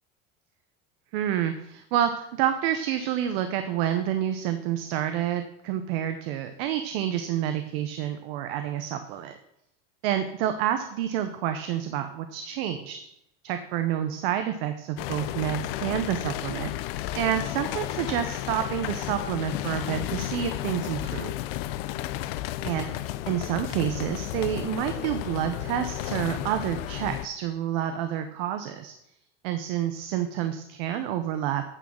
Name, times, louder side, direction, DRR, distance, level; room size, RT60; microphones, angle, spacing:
voice 1, 1.1-9.3 10.0-13.0 13.4-16.7 17.1-21.3 22.6-28.9 29.4-31.6, right 10 dB, 75° right, 8 dB, 0.8 m, -29 dB
sound 1, 15.0-27.3, left 14 dB, 75° left, 0.5 m, -33 dB
8.9 x 4.1 x 6.3 m, 0.80 s
supercardioid pair, 115°, 30 cm